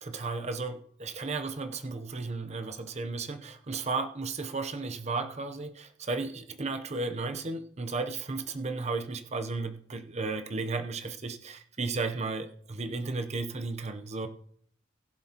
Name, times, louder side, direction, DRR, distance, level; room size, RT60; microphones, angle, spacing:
voice 1, 0.0-14.3, right 3 dB, 35° right, 8 dB, 0.8 m, -34 dB
20.5 x 7.6 x 2.9 m, 0.63 s
head